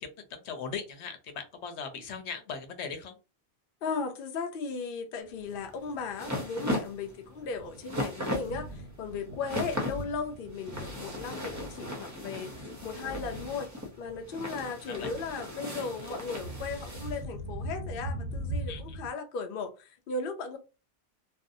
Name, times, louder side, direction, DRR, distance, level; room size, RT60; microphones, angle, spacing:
voice 1, 0.0-3.2 15.0-15.1 18.7-18.8, left 6 dB, 90° left, 0.9 m, -39 dB
voice 2, 3.8-13.7 14.0-20.6, left 4 dB, 60° left, 0.7 m, -36 dB
Thunder, 5.4-19.1, right 1 dB, 60° right, 0.7 m, -42 dB
sound 1, 5.5-17.2, left 1 dB, 25° right, 0.4 m, -37 dB
2.6 x 2.0 x 2.5 m
omnidirectional pair, 1.1 m